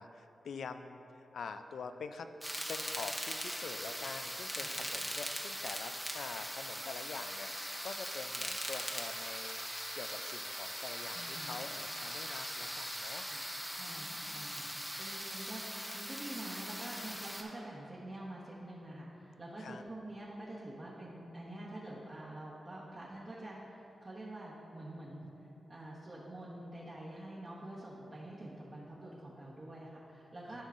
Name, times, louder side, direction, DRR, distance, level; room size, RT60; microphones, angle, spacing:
voice 1, 0.0-2.3 2.7-13.2 13.9-14.7 19.6-19.8 25.2-25.3 30.5-30.6, left 5 dB, 80° left, 8 dB, 0.3 m, -46 dB
sound 1, 2.4-17.4, equal, ahead, 0.9 m, -40 dB
voice 2, 11.1-11.6 13.2-25.3 25.7-30.6, right 1 dB, 40° right, -8 dB, 1.1 m, -47 dB
12.5 x 5.5 x 2.5 m, 2.9 s
cardioid pair, 70°, 0 cm